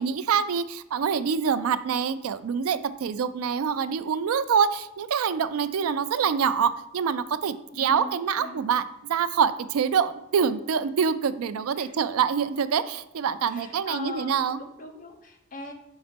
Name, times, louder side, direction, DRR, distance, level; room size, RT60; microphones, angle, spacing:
voice 1, 0.0-8.8 9.1-14.6, right 7 dB, 85° right, 13 dB, 0.4 m, -25 dB
voice 2, 7.7-8.6 11.8-11.9 13.5-15.7, left 2 dB, 40° left, 2 dB, 0.8 m, -40 dB
5.0 x 4.0 x 5.1 m, 0.83 s
head